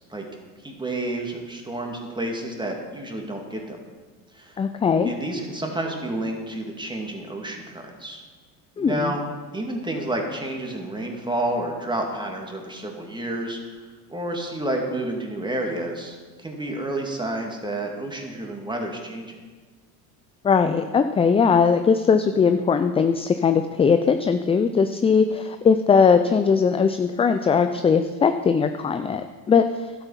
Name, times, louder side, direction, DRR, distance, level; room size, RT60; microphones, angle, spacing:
voice 1, 0.6-3.8 4.3-4.6 5.0-8.2 8.8-9.2 9.5-13.6 14.1-19.4, right 1 dB, 10° right, 1 dB, 2.4 m, -30 dB
voice 2, 4.6-5.1 8.8-9.1 20.4-29.6, left 6 dB, 15° left, 9 dB, 0.3 m, -20 dB
11.5 x 8.2 x 5.8 m, 1.4 s
supercardioid pair, 85°, 44 cm